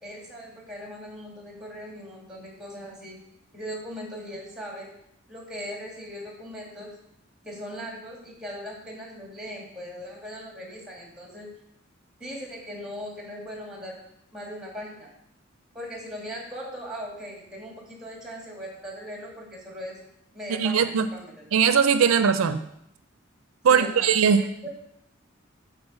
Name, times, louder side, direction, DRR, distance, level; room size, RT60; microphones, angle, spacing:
voice 1, 0.0-3.2 3.5-4.9 5.3-7.0 7.4-11.5 12.2-14.0 14.3-15.1 15.7-20.0 20.3-21.5 23.7-24.1 24.4-24.7, equal, 5° right, -2 dB, 2.4 m, -39 dB
voice 2, 20.5-21.1 21.5-22.6 23.6-24.7, right 6 dB, 75° right, 12 dB, 0.4 m, -20 dB
8.2 x 4.1 x 6.8 m, 0.75 s
head